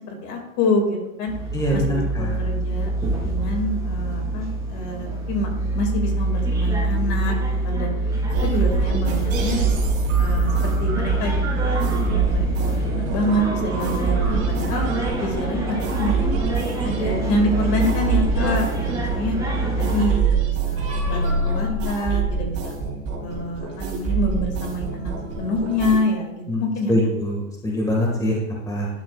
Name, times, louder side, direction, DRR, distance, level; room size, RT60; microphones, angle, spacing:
voice 1, 0.1-1.3 1.7-2.9 3.3-5.5 5.7-7.3 7.6-7.9 8.4-9.6 10.2-14.8 15.2-16.4 16.8-19.4 19.8-22.8 23.2-26.9, left 1 dB, 45° left, 3 dB, 2.2 m, -26 dB
sound 1, 1.3-20.1, right 2 dB, 10° right, 3.0 m, -25 dB
voice 2, 1.5-2.4 26.5-28.9, equal, 10° left, -2 dB, 1.7 m, -24 dB
sound 2, 8.3-26.0, right 4 dB, 35° right, 3.0 m, -26 dB
11.0 x 6.9 x 2.4 m, 0.90 s
hypercardioid pair, 115°, 42 cm